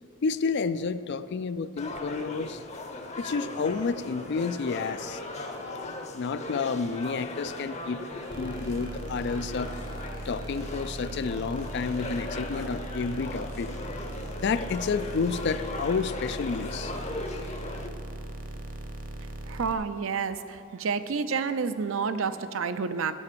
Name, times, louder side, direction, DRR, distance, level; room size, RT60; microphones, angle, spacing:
voice 1, 0.2-2.6 3.2-5.2 6.1-8.0 8.4-9.7 10.3-13.7 14.4-16.9, left 5 dB, 50° left, 13 dB, 0.3 m, -30 dB
sound 1, 1.8-17.9, left 2 dB, 30° left, 0.7 m, -38 dB
sound 2, 2.5-12.4, right 2 dB, 15° right, 0.6 m, -54 dB
sound 3, 8.3-19.7, right 1 dB, 40° right, 0.9 m, -39 dB
voice 2, 19.5-23.1, right 5 dB, 65° right, 11 dB, 0.5 m, -29 dB
9.7 x 8.2 x 6.8 m, 2.5 s
head